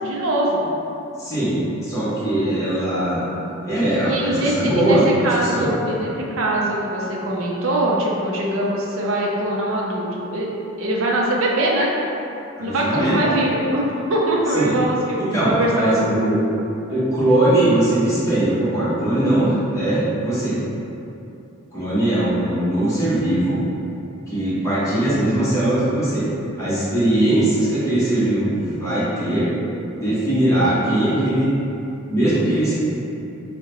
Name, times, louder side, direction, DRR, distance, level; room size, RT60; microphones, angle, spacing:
voice 1, 0.0-0.7 4.0-5.0 5.2-10.5 10.8-11.9 12.6-16.1, right 1 dB, 85° right, -3 dB, 0.5 m, -22 dB
voice 2, 1.2-3.2 3.6-5.7 12.6-13.2 14.5-14.8 15.3-16.4 16.9-20.6 21.7-23.6 24.3-26.2 26.6-29.5 30.0-31.6 32.1-32.7, right 1 dB, 15° left, -12 dB, 0.8 m, -20 dB
3.7 x 2.1 x 2.9 m, 2.8 s
head